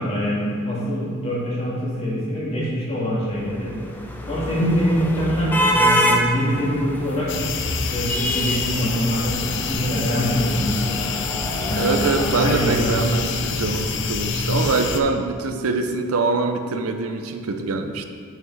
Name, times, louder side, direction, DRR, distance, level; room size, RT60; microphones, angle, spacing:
voice 1, 0.0-3.7 4.3-7.3 7.7-11.3 11.6-12.1 12.4-12.9 13.3-13.4, equal, 25° left, -7 dB, 2.1 m, -24 dB
sound 1, 3.4-13.7, equal, 10° left, 0.5 m, -27 dB
sound 2, 7.3-15.0, left 5 dB, 55° left, 0.5 m, -27 dB
voice 2, 11.7-18.0, right 3 dB, 85° right, 6 dB, 0.6 m, -24 dB
7.9 x 5.8 x 4.7 m, 2.1 s
head